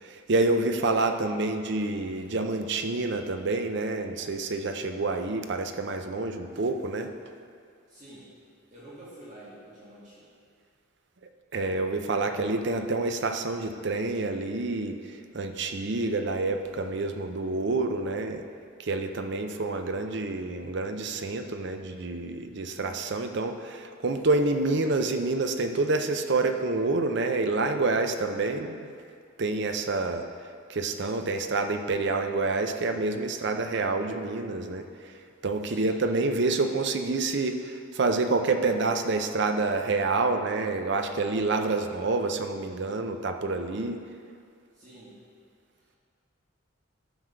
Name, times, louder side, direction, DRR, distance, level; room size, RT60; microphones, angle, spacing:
voice 1, 0.0-7.1 11.5-18.4 18.8-28.8 29.4-30.2 30.7-34.9 35.4-44.0, right 3 dB, 55° right, 6 dB, 0.6 m, -28 dB
voice 2, 7.9-8.3 8.7-10.4 12.1-12.5 35.6-35.9 44.7-45.2 45.8-46.0, right 1 dB, 35° right, -9 dB, 2.2 m, -49 dB
11.0 x 6.5 x 4.5 m, 2.2 s
head